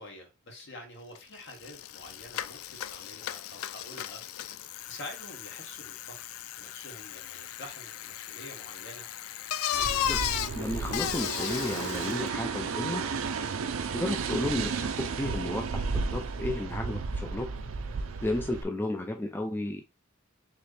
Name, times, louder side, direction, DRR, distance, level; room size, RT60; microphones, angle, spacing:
voice 1, 0.0-4.2 4.9-6.3 6.6-9.0, left 1 dB, 55° left, 1.5 m, -47 dB
Bicycle, 1.2-1.3 1.5-12.3, left 11 dB, 85° left, 0.4 m, -35 dB
sound 1, 9.7-18.6, right 4 dB, 75° right, 0.5 m, -33 dB
voice 2, 10.6-13.0 13.9-17.5 18.2-19.9, left 1 dB, 10° left, 0.3 m, -33 dB
4.3 x 3.1 x 3.1 m
head